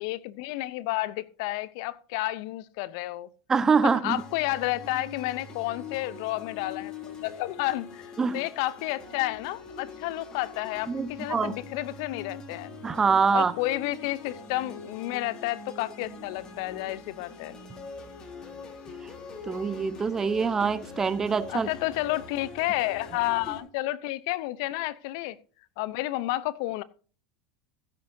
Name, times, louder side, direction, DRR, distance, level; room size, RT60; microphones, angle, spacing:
voice 1, 0.0-3.3 3.8-12.7 13.3-17.6 21.5-25.4 25.8-26.8, left 17 dB, 65° left, 0.7 m, -31 dB
voice 2, 3.5-4.2 8.2-8.4 10.9-11.5 12.8-13.5 19.5-21.7, right 5 dB, 25° right, 1.1 m, -24 dB
sound 1, 4.0-23.6, left 4 dB, 35° left, 3.1 m, -43 dB
16.0 x 9.9 x 2.7 m
hypercardioid pair, 85°, 2 cm